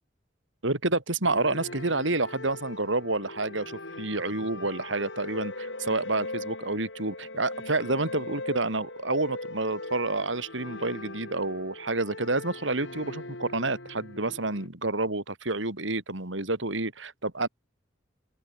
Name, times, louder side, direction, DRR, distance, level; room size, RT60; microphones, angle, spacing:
voice 1, 0.6-17.5, right 2 dB, 85° right, 3.8 m, -29 dB
sound 1, 1.2-14.7, left 2 dB, 70° left, 4.3 m, -40 dB
open air
head